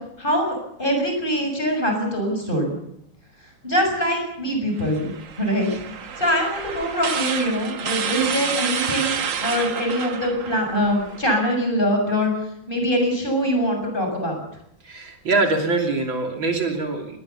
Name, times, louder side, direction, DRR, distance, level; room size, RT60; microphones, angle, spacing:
voice 1, 0.2-2.7 3.6-5.1 5.4-5.7 6.2-12.3 12.7-14.4, equal, 25° left, 3 dB, 6.7 m, -23 dB
sound 1, 4.8-11.3, right 7 dB, 45° right, 1.3 m, -29 dB
voice 2, 14.8-17.2, right 3 dB, 80° right, 3 dB, 3.7 m, -23 dB
21.0 x 19.5 x 7.0 m, 0.75 s
omnidirectional pair, 2.1 m